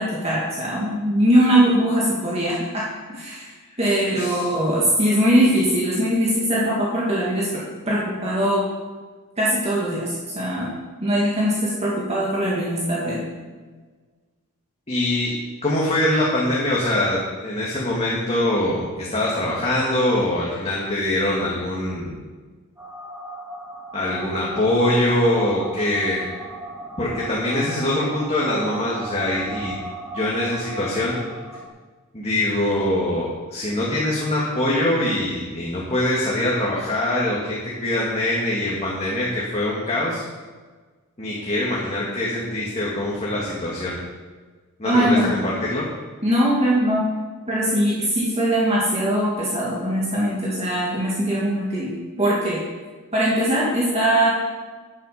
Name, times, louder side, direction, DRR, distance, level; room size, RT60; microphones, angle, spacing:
voice 1, 0.0-2.9 3.1-3.5 3.8-8.6 9.4-10.7 11.0-13.2 44.8-45.4 46.2-47.1 47.5-51.9 52.2-52.6 53.1-54.3, equal, 30° right, -6 dB, 2.2 m, -21 dB
voice 2, 14.9-15.3 15.6-22.2 23.9-26.2 27.0-29.7 30.1-31.2 32.1-40.2 41.2-44.0 44.8-45.9, left 1 dB, 30° left, -6 dB, 2.2 m, -23 dB
sound 1, 22.8-31.7, right 2 dB, 10° right, 2.0 m, -36 dB
11.0 x 10.5 x 5.1 m, 1.4 s
head